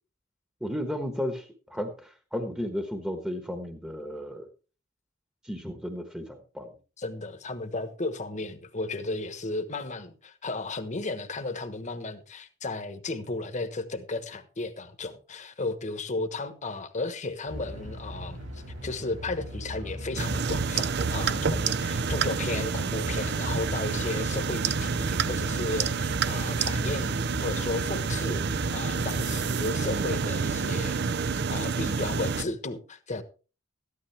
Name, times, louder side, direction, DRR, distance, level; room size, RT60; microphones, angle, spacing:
voice 1, 0.6-4.5 5.4-6.7, equal, 5° right, 1.2 m, -34 dB
voice 2, 7.0-33.2, left 3 dB, 40° left, 1.3 m, -34 dB
sound 1, 17.5-29.5, equal, 75° right, 4.5 m, -39 dB
sound 2, 20.2-32.4, right 5 dB, 60° right, 0.6 m, -28 dB
13.5 x 11.5 x 3.4 m
head